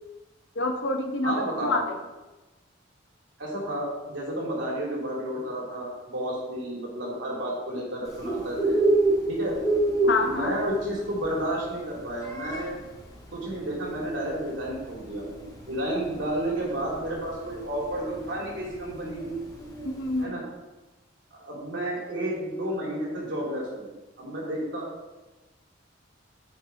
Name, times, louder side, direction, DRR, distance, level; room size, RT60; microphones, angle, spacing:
voice 1, 0.5-1.8 10.1-10.5 19.8-20.4, left 2 dB, 70° left, 4 dB, 1.1 m, -27 dB
voice 2, 1.2-1.8 3.4-8.8 9.3-9.6 10.0-12.8 13.3-15.2 15.7-19.3 20.2-20.4 21.3-23.9 24.2-24.8, right 1 dB, 70° right, -4 dB, 2.9 m, -31 dB
Bird, 8.1-20.2, right 2 dB, 20° left, 1.6 m, -29 dB
7.4 x 5.9 x 4.6 m, 1.1 s
head